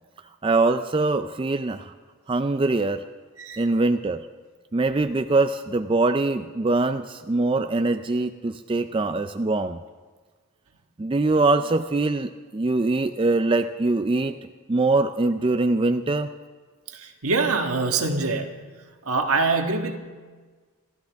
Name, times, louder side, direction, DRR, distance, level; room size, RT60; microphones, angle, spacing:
voice 1, 0.4-1.9 2.3-3.0 3.6-4.3 4.7-9.8 11.0-14.4 14.7-16.3, right 2 dB, 25° right, 8 dB, 0.4 m, -23 dB
voice 2, 16.9-18.5 19.0-20.0, right 3 dB, 80° right, 4 dB, 1.5 m, -24 dB
27.5 x 12.5 x 3.5 m, 1.4 s
head